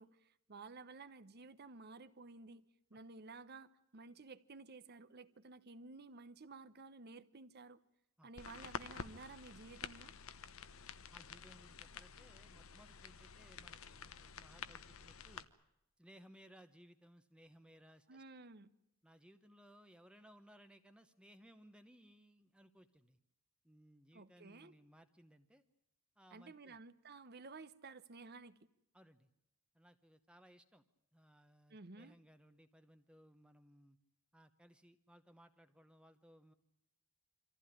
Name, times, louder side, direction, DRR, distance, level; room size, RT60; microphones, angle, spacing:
voice 1, 0.0-2.6 2.9-7.8 8.2-10.1 18.1-18.7 24.1-24.7 26.3-28.6 31.7-32.1, right 3 dB, 50° right, 0.9 m, -54 dB
sound 1, 8.4-15.5, left 6 dB, 75° left, 1.0 m, -50 dB
voice 2, 11.1-15.5 16.0-18.2 19.0-23.2 23.6-25.6 26.2-26.8 28.9-29.3 29.7-30.8 31.1-34.0 34.3-36.5, equal, 5° right, 0.9 m, -63 dB
25.0 x 15.0 x 10.0 m
head